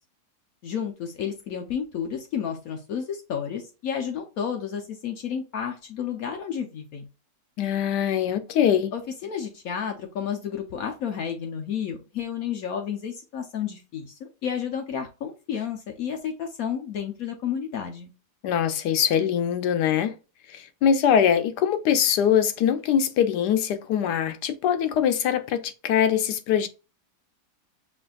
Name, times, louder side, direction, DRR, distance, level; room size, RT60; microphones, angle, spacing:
voice 1, 0.6-7.1 8.9-18.1, left 8 dB, 65° left, 1.0 m, -31 dB
voice 2, 7.6-8.9 18.4-20.1 20.5-26.7, left 8 dB, 85° left, 1.2 m, -23 dB
5.8 x 2.6 x 2.3 m
omnidirectional pair, 1.8 m